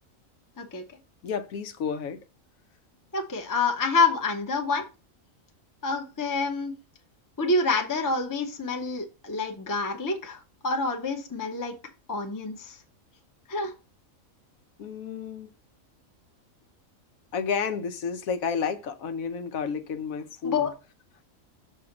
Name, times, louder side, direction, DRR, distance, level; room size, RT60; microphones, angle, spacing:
voice 1, 1.2-2.2 14.8-15.5 17.3-20.7, left 6 dB, 85° left, 1.2 m, -31 dB
voice 2, 3.1-4.8 5.8-6.7 7.4-11.7 12.1-12.7 13.5-13.7 20.4-20.7, left 3 dB, 20° left, 0.7 m, -27 dB
6.2 x 3.3 x 5.8 m
omnidirectional pair, 1.4 m